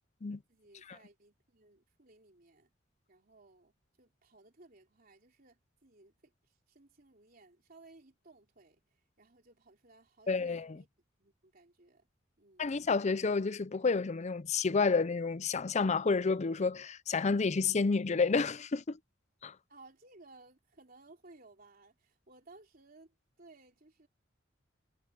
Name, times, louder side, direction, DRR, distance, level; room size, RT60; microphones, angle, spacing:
voice 1, 0.5-2.7 3.1-10.9 11.2-12.1 12.4-12.7 19.7-24.1, right 2 dB, 50° right, 3.6 m, -60 dB
voice 2, 10.3-10.8 12.6-19.0 19.4-19.5, left 4 dB, 35° left, 0.5 m, -30 dB
head